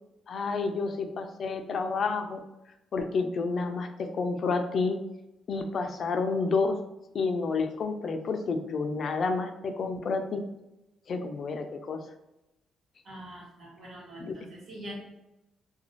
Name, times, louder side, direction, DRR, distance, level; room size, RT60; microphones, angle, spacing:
voice 1, 0.3-2.4 2.9-5.0 5.5-6.8 7.1-10.5 11.1-12.1 14.2-14.4, left 4 dB, 55° left, 6 dB, 0.4 m, -30 dB
voice 2, 13.0-14.9, right 1 dB, 60° right, -4 dB, 1.2 m, -44 dB
2.5 x 2.3 x 3.1 m, 0.94 s
cardioid pair, 90°, 0 cm